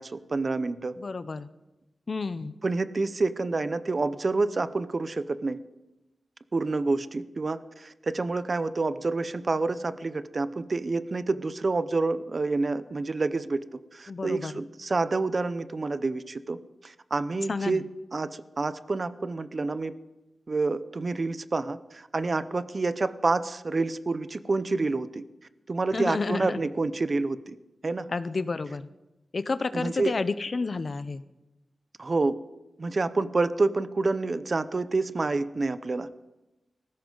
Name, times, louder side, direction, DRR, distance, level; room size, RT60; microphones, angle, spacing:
voice 1, 0.0-1.0 2.6-5.6 6.5-13.6 13.9-17.8 18.1-19.9 20.5-25.2 25.7-27.6 27.8-28.1 29.7-30.1 32.0-32.4 32.8-36.1, right 3 dB, 40° right, 13 dB, 0.7 m, -28 dB
voice 2, 1.0-1.5 2.1-2.5 14.1-14.5 17.5-17.8 25.9-26.6 28.1-28.9 29.3-31.2, left 3 dB, 45° left, 14 dB, 0.6 m, -30 dB
19.0 x 16.0 x 3.9 m, 0.98 s
wide cardioid pair, 155°, 0 cm